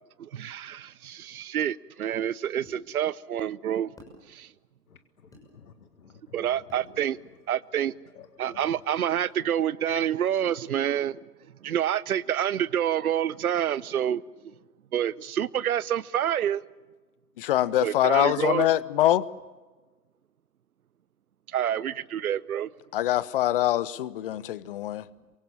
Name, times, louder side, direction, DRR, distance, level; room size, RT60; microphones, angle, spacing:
voice 1, 0.2-3.9 4.3-4.5 6.3-7.2 7.5-7.9 8.4-11.2 11.6-14.2 14.9-16.6 17.8-18.7 21.5-22.7, right 10 dB, 65° right, 0.8 m, -27 dB
sound 1, 2.7-2.8 4.0-4.2 5.3-5.5 6.7-6.9, equal, 5° left, 6.1 m, -49 dB
voice 2, 4.9-6.5 6.8-7.0 8.1-8.8 9.9-10.1, left 7 dB, 65° left, 2.0 m, -49 dB
voice 3, 17.4-19.3 22.9-25.0, left 13 dB, 35° left, 0.8 m, -24 dB
27.5 x 24.5 x 7.3 m
figure-of-eight pair, 120°, 47 cm